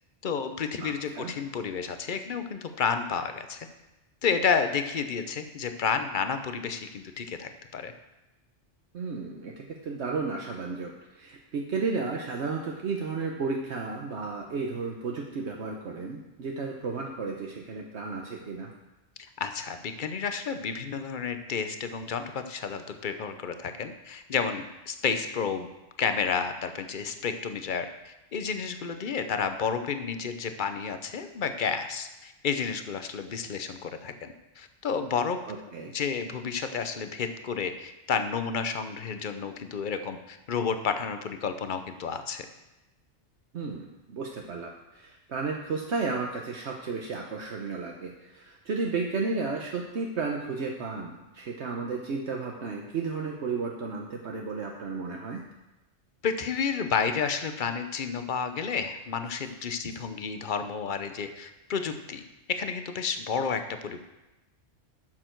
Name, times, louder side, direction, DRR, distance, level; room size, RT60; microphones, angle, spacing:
voice 1, 0.2-3.7 4.2-7.9 19.4-25.7 26.0-35.4 35.9-42.5 56.2-62.2 62.5-64.0, left 6 dB, 45° left, 8 dB, 0.8 m, -31 dB
voice 2, 0.8-1.3 8.9-18.7 35.5-35.9 43.5-55.4, right 4 dB, 65° right, 0 dB, 1.2 m, -33 dB
12.0 x 6.7 x 4.5 m, 0.99 s
omnidirectional pair, 1.3 m